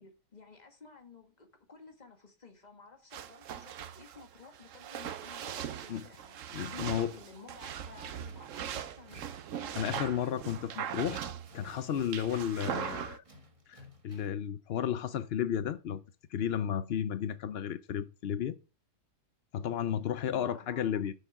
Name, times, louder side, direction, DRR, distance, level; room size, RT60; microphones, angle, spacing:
voice 1, 0.0-10.4 10.9-11.0 20.3-21.0, left 4 dB, 25° left, 1.7 m, -54 dB
sound 1, 3.1-13.2, right 9 dB, 60° right, 1.0 m, -40 dB
voice 2, 6.5-7.1 9.8-13.2 13.7-16.0 16.3-18.5 19.5-21.1, left 9 dB, 75° left, 0.5 m, -33 dB
Tools, 7.9-14.5, left 2 dB, 20° right, 1.4 m, -57 dB
8.3 x 6.6 x 5.9 m
omnidirectional pair, 1.8 m